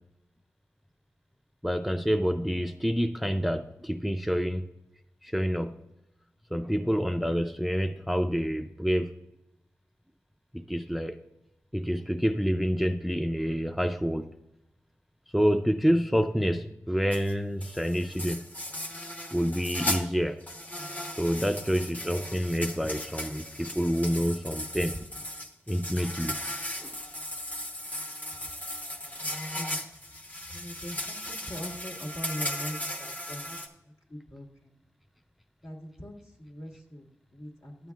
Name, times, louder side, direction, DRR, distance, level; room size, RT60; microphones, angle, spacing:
voice 1, 1.6-4.7 5.2-5.8 6.5-9.1 10.5-11.2 11.7-14.3 15.3-18.5 19.3-20.4 21.2-25.0 25.7-26.4 26.8-27.0, equal, ahead, 7 dB, 0.4 m, -28 dB
sound 1, 17.1-17.3 17.6-20.0 20.4-33.7, left 1 dB, 30° left, 1.0 m, -37 dB
voice 2, 29.4-29.8 30.5-33.6 34.1-34.7 35.6-36.1 36.4-37.9, equal, 60° left, 0 dB, 1.7 m, -41 dB
12.0 x 7.5 x 2.3 m, 0.86 s
cardioid pair, 60°, 6 cm